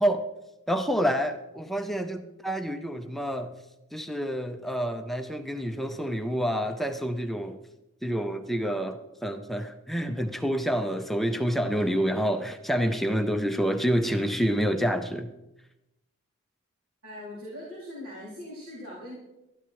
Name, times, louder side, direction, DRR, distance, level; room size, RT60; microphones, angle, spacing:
voice 1, 0.7-3.5 3.9-7.6 8.0-15.3, equal, ahead, 6 dB, 0.5 m, -28 dB
voice 2, 17.0-19.2, left 1 dB, 85° right, -7 dB, 4.3 m, -41 dB
13.0 x 11.5 x 4.6 m, 0.93 s
head